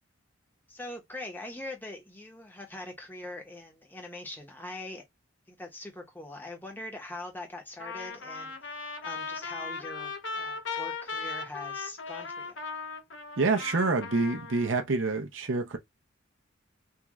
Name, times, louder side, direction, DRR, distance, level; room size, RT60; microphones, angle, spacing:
voice 1, 0.7-5.0 5.5-12.6, left 1 dB, 10° left, 0.9 m, -42 dB
Trumpet, 7.8-14.8, left 4 dB, 65° left, 0.7 m, -38 dB
voice 2, 13.4-15.8, right 3 dB, 75° right, 0.7 m, -27 dB
3.7 x 2.3 x 3.0 m
head